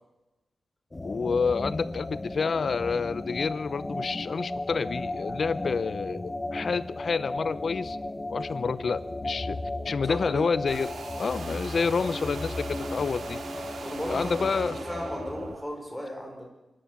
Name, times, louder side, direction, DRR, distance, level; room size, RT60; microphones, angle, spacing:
sound 1, 0.9-15.6, left 2 dB, 20° left, 1.3 m, -35 dB
voice 1, 1.0-8.0 8.3-9.6 9.8-10.9 11.2-13.4 14.1-14.8, left 5 dB, 60° left, 16 dB, 0.8 m, -28 dB
voice 2, 10.0-10.5 13.8-16.5, equal, 5° left, 1 dB, 5.9 m, -36 dB
sound 2, 10.7-15.7, right 5 dB, 80° right, 2.5 m, -41 dB
25.0 x 13.0 x 8.5 m, 1.0 s
wide cardioid pair, 120°, 0 cm